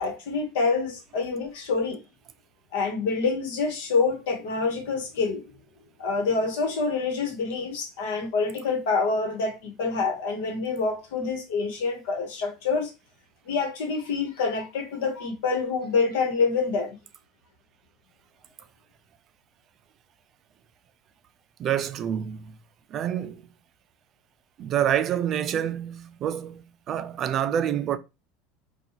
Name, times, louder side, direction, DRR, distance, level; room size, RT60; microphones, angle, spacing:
voice 1, 0.0-2.0 2.7-5.4 6.0-12.9 13.4-17.0, left 4 dB, 85° left, 1.2 m, -26 dB
voice 2, 21.6-22.6 22.9-23.5 24.6-28.0, right 10 dB, 35° right, 0.4 m, -27 dB
2.8 x 2.3 x 3.9 m
supercardioid pair, 145°, 0 cm